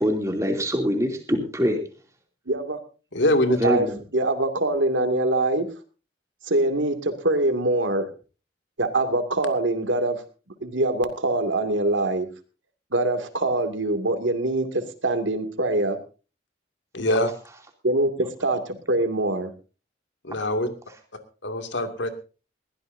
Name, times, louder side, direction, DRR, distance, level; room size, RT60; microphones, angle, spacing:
voice 1, 0.0-1.8 3.6-4.0, equal, 15° right, 3 dB, 2.8 m, -24 dB
voice 2, 2.5-2.8 3.6-5.7 6.4-8.1 8.8-10.2 10.6-12.3 12.9-16.0 17.8-19.5, right 2 dB, 90° right, 8 dB, 2.4 m, -24 dB
voice 3, 3.1-3.6 16.9-17.3 20.2-20.7 21.4-22.1, left 1 dB, 80° left, 7 dB, 2.4 m, -23 dB
21.5 x 15.5 x 2.7 m, 0.34 s
head